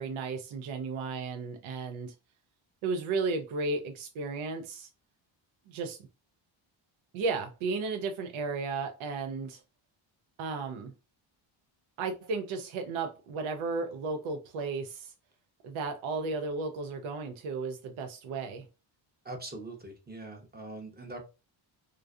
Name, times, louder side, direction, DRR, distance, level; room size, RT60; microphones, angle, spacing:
voice 1, 0.0-2.1 2.8-4.9 5.7-6.0 7.1-9.6 10.4-10.9 12.0-15.1 15.6-18.7, right 4 dB, 70° right, 0.5 m, -34 dB
voice 2, 19.2-21.2, right 2 dB, 20° right, 0.7 m, -42 dB
2.5 x 2.3 x 2.3 m
cardioid pair, 95°, 50 cm